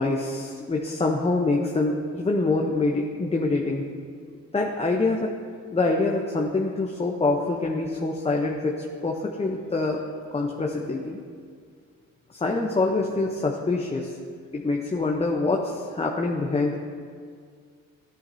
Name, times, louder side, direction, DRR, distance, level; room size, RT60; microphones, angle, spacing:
voice 1, 0.0-3.9 4.5-5.3 5.7-10.0 10.3-11.2 12.3-14.2 14.5-16.8, left 3 dB, 20° left, 1 dB, 0.8 m, -25 dB
13.5 x 10.0 x 2.7 m, 2.1 s
cardioid pair, 90°, 30 cm